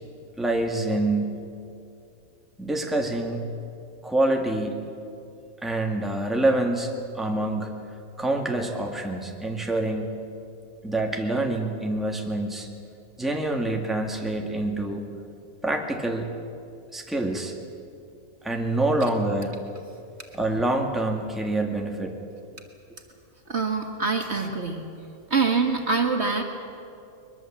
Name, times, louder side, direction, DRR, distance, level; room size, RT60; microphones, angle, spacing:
voice 1, 0.4-1.4 2.6-3.5 4.0-4.8 5.6-7.7 8.2-10.1 10.8-12.7 13.2-15.1 15.6-16.3 16.9-17.5 18.4-19.5 20.3-22.1, right 2 dB, ahead, 1 dB, 2.0 m, -26 dB
voice 2, 23.5-24.8 25.3-26.4, right 4 dB, 50° right, 4 dB, 1.9 m, -24 dB
22.0 x 22.0 x 7.5 m, 2.5 s
omnidirectional pair, 1.5 m